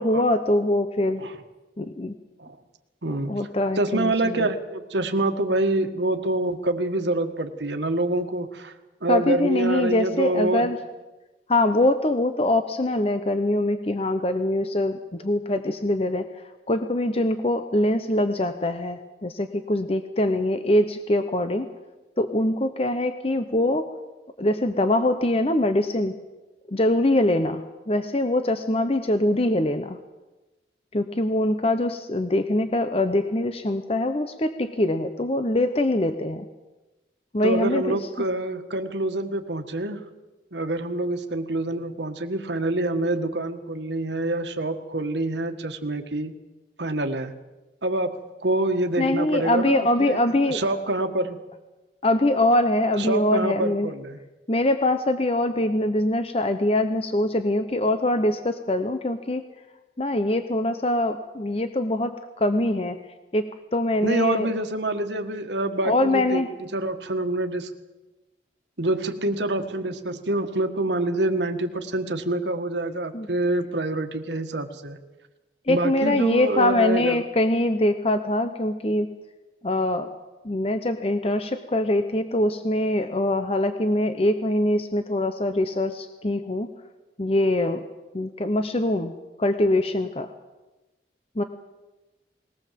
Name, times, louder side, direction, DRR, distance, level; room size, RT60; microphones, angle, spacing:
voice 1, 0.0-1.2 1.8-2.2 3.1-4.5 9.1-10.8 11.5-16.3 16.7-21.7 22.2-23.9 24.4-26.1 26.7-30.0 30.9-36.5 37.3-38.0 49.0-50.6 52.0-53.9 54.5-59.4 60.0-63.0 63.3-64.5 65.8-66.5 73.1-73.3 75.7-79.1 79.6-80.1 80.4-86.7 87.2-87.8 88.1-89.1 89.4-90.3 91.4-91.5, left 1 dB, 35° left, 9 dB, 0.9 m, -23 dB
voice 2, 3.0-3.3 3.8-8.7 9.0-10.7 37.4-40.0 40.5-46.3 46.8-47.3 47.8-50.2 50.5-51.4 53.0-54.2 64.0-67.7 68.8-75.0 75.7-77.2, right 2 dB, 80° right, 6 dB, 1.7 m, -26 dB
21.0 x 18.5 x 7.6 m, 1.1 s
head